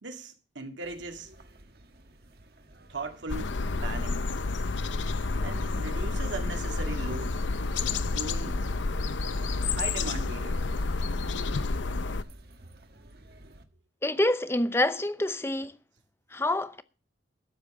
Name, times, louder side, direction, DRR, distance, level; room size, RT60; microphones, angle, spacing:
voice 1, 0.0-1.3 2.9-4.3 5.4-7.4 8.1-8.6 9.6-10.6, right 3 dB, 80° right, 2.1 m, -39 dB
sound 1, 0.8-13.6, right 1 dB, 55° right, 1.4 m, -54 dB
sound 2, 3.3-12.2, left 3 dB, 80° left, 0.7 m, -30 dB
voice 2, 14.0-15.7 16.3-16.8, left 1 dB, 15° left, 0.6 m, -27 dB
12.5 x 7.5 x 6.6 m
head